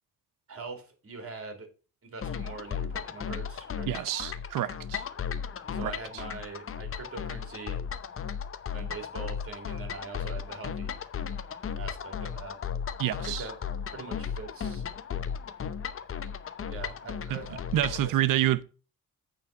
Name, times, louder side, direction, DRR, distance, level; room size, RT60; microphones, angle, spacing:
voice 1, 0.5-1.7 2.0-3.9 5.6-7.8 8.7-11.0 11.8-12.6 13.2-13.5 13.9-14.8 16.7-17.6 18.0-18.1, right 4 dB, 45° right, 3.1 m, -42 dB
sound 1, 2.2-18.1, left 7 dB, 45° left, 0.8 m, -36 dB
voice 2, 3.9-5.0 5.8-5.9 13.0-13.5 17.3-17.4 17.7-18.6, right 13 dB, 80° right, 0.8 m, -28 dB
9.0 x 4.1 x 7.2 m
cardioid pair, 105°, 32 cm